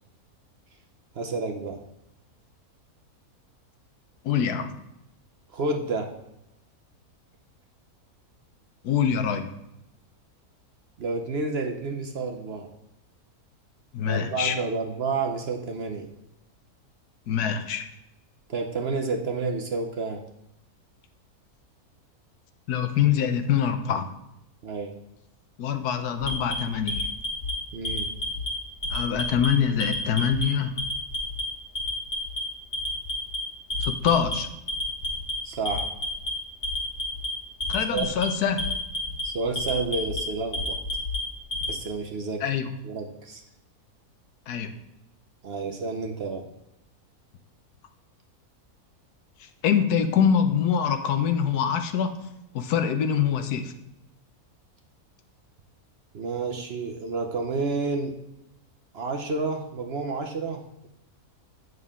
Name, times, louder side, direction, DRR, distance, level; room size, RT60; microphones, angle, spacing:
voice 1, 1.1-1.8 5.5-6.1 11.0-12.7 14.0-16.1 18.5-20.2 24.6-25.0 27.7-28.1 35.4-35.9 37.9-38.1 39.2-40.8 41.7-42.4 42.8-43.4 45.4-46.5 56.1-58.2 58.9-60.6, right 3 dB, 50° right, 3 dB, 0.8 m, -30 dB
voice 2, 4.2-4.7 8.8-9.5 13.9-14.5 17.3-17.9 22.7-24.1 25.6-27.1 28.9-30.7 33.8-34.5 37.7-38.6 42.4-42.7 44.5-44.7 49.4-52.1 52.5-53.7, left 8 dB, 85° left, 8 dB, 1.3 m, -24 dB
Alarm, 26.2-27.5 27.9-28.5 28.8-29.5 29.8-30.4 30.8-31.4 31.8-32.4 32.7-33.4 33.7-34.3 34.7-35.3 35.7-36.3 36.6-37.3 37.6-38.3 38.6-39.2 39.6-40.2 40.5-41.7, left 1 dB, 50° left, 1.8 m, -30 dB
8.8 x 6.4 x 3.6 m, 0.86 s
omnidirectional pair, 1.6 m